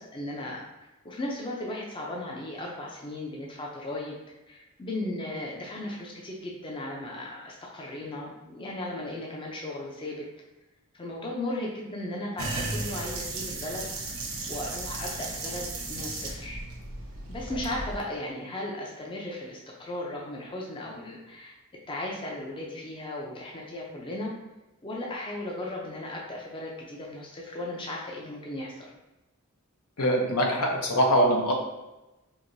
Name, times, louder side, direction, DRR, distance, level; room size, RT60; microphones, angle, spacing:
voice 1, 0.0-4.2 4.5-10.2 10.9-13.8 14.5-16.6 17.3-21.5 21.9-24.3 24.8-28.9, left 1 dB, 20° left, -2 dB, 0.5 m, -36 dB
sound 1, 12.4-18.0, right 2 dB, 70° right, 0.8 m, -35 dB
voice 2, 30.0-31.5, equal, 80° left, 1 dB, 0.8 m, -23 dB
4.6 x 2.6 x 2.6 m, 1.0 s
head